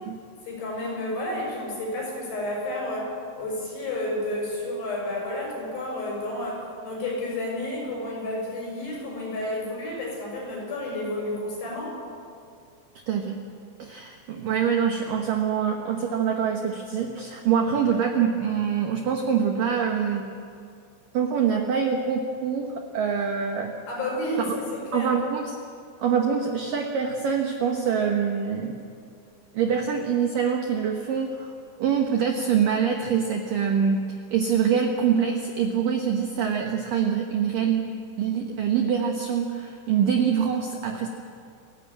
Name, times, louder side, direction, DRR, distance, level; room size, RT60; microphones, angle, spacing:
voice 1, 0.5-12.0 23.9-25.1, left 1 dB, 60° left, -2 dB, 8.6 m, -31 dB
voice 2, 13.1-13.4 13.8-20.3 21.1-23.7 24.5-24.6 24.9-25.6 26.0-28.8 29.5-31.5 31.8-37.9 38.2-41.1, right 7 dB, 70° right, 3 dB, 2.1 m, -25 dB
29.0 x 11.5 x 8.8 m, 2.3 s
omnidirectional pair, 5.5 m